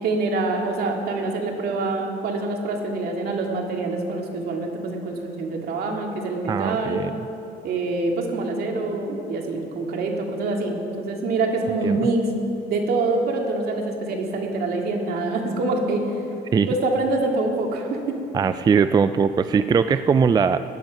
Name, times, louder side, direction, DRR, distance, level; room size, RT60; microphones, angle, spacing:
voice 1, 0.0-7.0 7.6-12.3 12.7-16.1 16.7-18.2, right 3 dB, 65° right, 1 dB, 2.2 m, -25 dB
voice 2, 6.5-7.1 11.8-12.0 16.5-16.7 18.3-20.6, right 6 dB, 25° right, 12 dB, 0.3 m, -20 dB
17.5 x 10.5 x 5.2 m, 3.0 s
cardioid pair, 110°, 17 cm